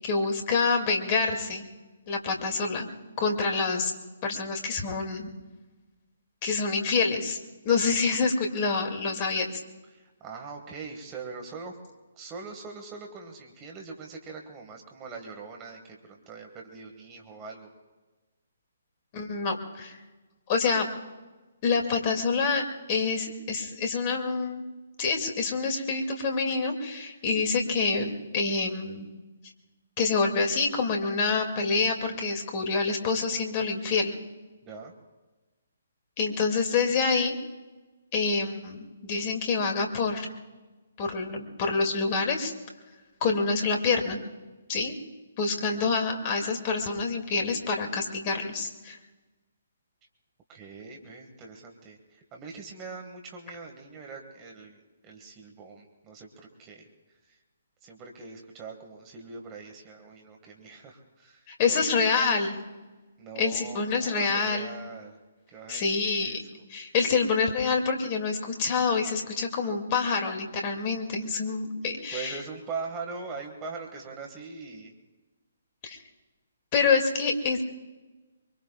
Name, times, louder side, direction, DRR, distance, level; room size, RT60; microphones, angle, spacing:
voice 1, 0.0-1.7 2.1-2.9 3.2-3.9 4.2-5.3 6.4-7.4 7.6-9.5 19.1-20.0 20.5-20.9 21.6-24.6 25.0-29.1 30.0-34.2 36.2-37.3 38.1-40.3 41.0-42.5 43.2-44.2 44.7-45.0 45.4-49.0 61.5-62.6 63.4-64.7 65.7-66.4 66.7-72.4 75.8-76.0 76.7-77.6, left 4 dB, 35° left, 4 dB, 2.3 m, -27 dB
voice 2, 9.9-11.8 12.1-17.7 34.6-34.9 50.5-56.9 57.3-57.4 57.8-62.1 63.2-65.2 65.5-66.4 72.1-74.9, right 4 dB, 20° right, 2 dB, 1.8 m, -42 dB
24.5 x 24.0 x 2.4 m, 1.2 s
figure-of-eight pair, 135°, 0 cm